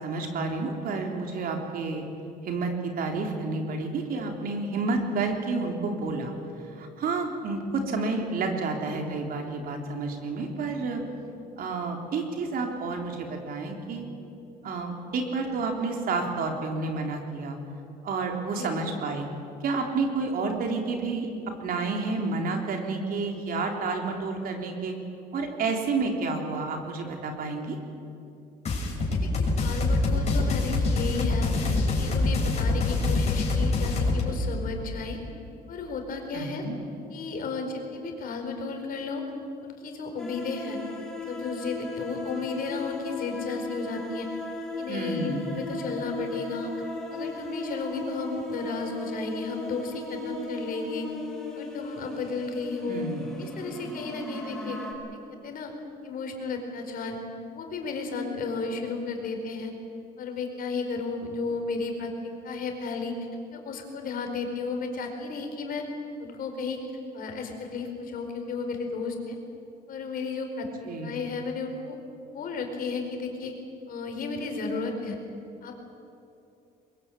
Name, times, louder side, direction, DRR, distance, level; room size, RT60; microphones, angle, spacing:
voice 1, 0.0-2.0 2.4-6.3 6.7-11.0 11.6-14.1 14.6-17.6 18.0-19.3 19.6-21.3 21.6-25.0 25.3-27.8 36.3-36.8 44.9-45.6 52.9-53.3 70.9-71.2, right 3 dB, 60° right, 3 dB, 3.8 m, -30 dB
sound 1, 28.6-34.2, left 3 dB, 40° left, 6.5 m, -25 dB
voice 2, 29.5-31.5 31.9-35.2 35.7-36.6 37.1-39.2 39.6-40.8 41.3-44.3 44.8-46.7 47.1-51.1 51.6-53.0 53.4-54.8 55.4-55.7 56.0-57.2 57.5-59.7 60.2-63.1 63.5-65.8 66.2-66.8 67.1-69.4 69.9-70.7 71.0-72.0 72.3-73.5 73.9-75.2 75.6-75.8, left 4 dB, 60° left, 4 dB, 4.7 m, -33 dB
sound 2, 40.2-54.9, left 2 dB, ahead, 7.7 m, -37 dB
22.5 x 21.5 x 8.8 m, 2.8 s
cardioid pair, 110°, 17 cm